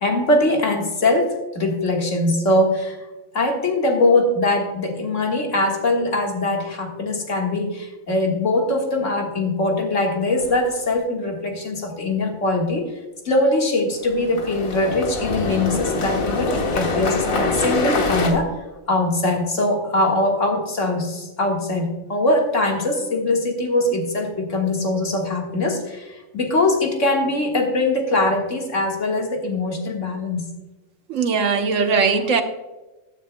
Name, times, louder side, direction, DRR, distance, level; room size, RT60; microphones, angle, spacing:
voice 1, 0.0-3.0 3.3-12.9 13.3-18.6 18.9-30.5, left 2 dB, 65° left, 1 dB, 2.0 m, -22 dB
sound 1, 10.4-10.8 14.0-18.3, left 3 dB, 90° left, 1.7 m, -24 dB
voice 2, 31.1-32.4, right 5 dB, 70° right, 7 dB, 1.3 m, -19 dB
14.5 x 9.8 x 2.2 m, 1.1 s
omnidirectional pair, 1.4 m